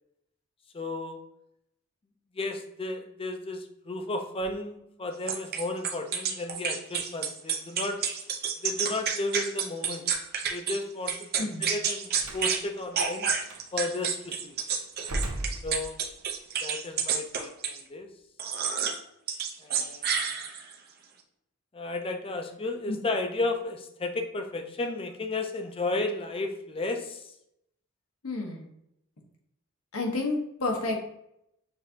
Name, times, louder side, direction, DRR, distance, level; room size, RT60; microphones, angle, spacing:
voice 1, 0.7-1.2 2.4-8.0 8.6-10.0 10.5-13.3 13.7-14.6 15.6-16.0 16.6-18.1 19.6-20.1 21.7-27.2, left 2 dB, 25° left, 5 dB, 0.5 m, -33 dB
sound 1, 5.3-10.8 11.1-12.6 12.9-17.8 18.4-19.0 19.3-20.8, right 7 dB, 45° right, 0.6 m, -29 dB
voice 2, 11.4-11.7 22.9-23.0 28.2-28.7 29.9-31.0, left 2 dB, 80° left, 0 dB, 1.1 m, -30 dB
Slam, 12.2-12.5 13.4-13.6 15.0-16.3, right 1 dB, 85° right, 0.7 m, -35 dB
6.6 x 2.7 x 2.7 m, 0.78 s
head